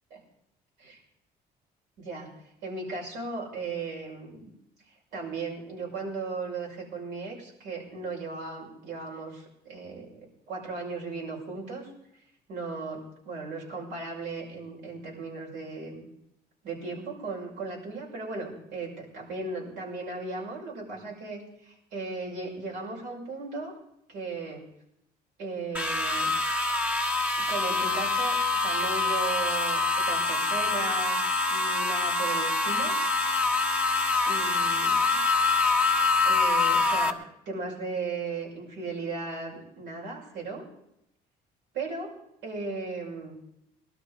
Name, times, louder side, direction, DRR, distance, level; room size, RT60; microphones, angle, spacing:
voice 1, 2.0-2.3 2.6-4.5 5.1-11.9 12.5-16.1 16.6-23.7 24.1-24.6 25.4-26.3 27.4-32.9 34.2-35.2 36.2-37.2 37.5-40.6 41.7-42.1 42.4-43.3, right 3 dB, 85° right, -2 dB, 6.4 m, -36 dB
sound 1, 25.7-37.1, left 3 dB, 10° right, 1.5 m, -25 dB
20.0 x 12.5 x 5.1 m, 0.80 s
cardioid pair, 110°, 17 cm